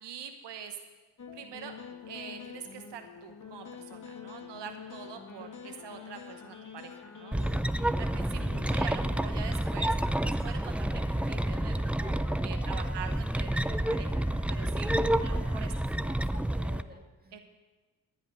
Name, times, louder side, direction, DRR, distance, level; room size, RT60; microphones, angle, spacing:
voice 1, 0.0-0.8 1.3-1.8 2.1-7.4 8.0-9.9 10.2-12.2 12.4-14.9 15.2-15.7 17.3-17.4, right 7 dB, 80° right, 6 dB, 1.1 m, -44 dB
sound 1, 1.2-13.1 13.4-15.6, left 6 dB, 45° left, 1.7 m, -48 dB
sound 2, 7.3-16.8, right 1 dB, 5° right, 0.4 m, -29 dB
voice 2, 12.6-13.2 15.1-17.4, right 1 dB, 20° right, 2 dB, 2.4 m, -50 dB
15.0 x 5.6 x 9.0 m, 1.3 s
supercardioid pair, 55°, 41 cm